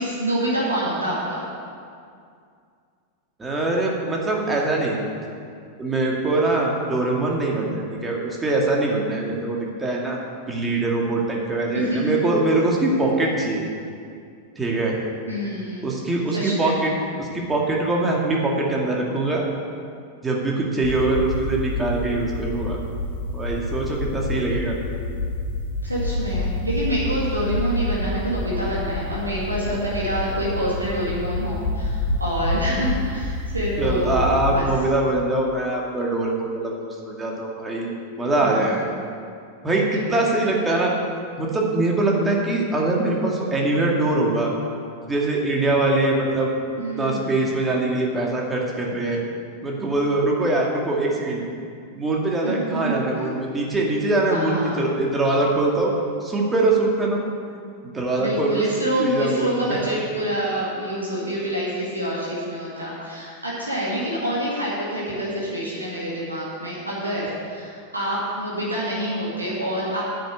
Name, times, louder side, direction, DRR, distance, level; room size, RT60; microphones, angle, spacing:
voice 1, 0.0-1.5 11.7-12.1 12.5-12.6 15.3-15.9 16.3-16.8 25.8-34.2 34.5-34.7 38.4-38.8 40.1-40.3 46.8-47.3 52.4-53.3 54.3-54.8 58.2-70.0, equal, 80° right, -6 dB, 2.1 m, -27 dB
voice 2, 3.4-5.0 5.8-10.2 10.5-13.7 14.6-15.0 15.8-16.9 17.2-19.5 20.2-22.8 23.3-24.8 33.8-38.9 39.6-40.9 41.4-44.5 45.1-46.5 47.0-49.2 49.6-51.4 52.0-55.9 56.2-57.2 57.8-58.6 59.0-59.8, right 2 dB, 15° right, -2 dB, 2.2 m, -23 dB
sound 1, 20.8-34.6, left 2 dB, 55° left, 2.2 m, -28 dB
10.0 x 6.6 x 8.1 m, 2.3 s
figure-of-eight pair, 90°, 0 cm